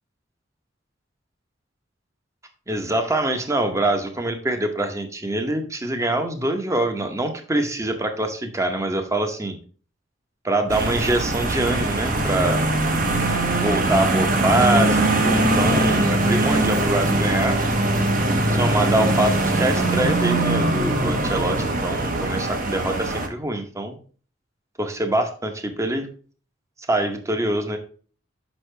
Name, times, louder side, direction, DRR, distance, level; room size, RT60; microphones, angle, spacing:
voice 1, 2.7-9.6 10.4-12.6 13.5-17.6 18.5-24.0 24.8-26.1 26.9-27.8, right 1 dB, 15° right, 6 dB, 0.8 m, -24 dB
sound 1, 10.7-23.3, right 2 dB, 45° right, 0.8 m, -21 dB
6.3 x 5.6 x 3.2 m, 0.41 s
head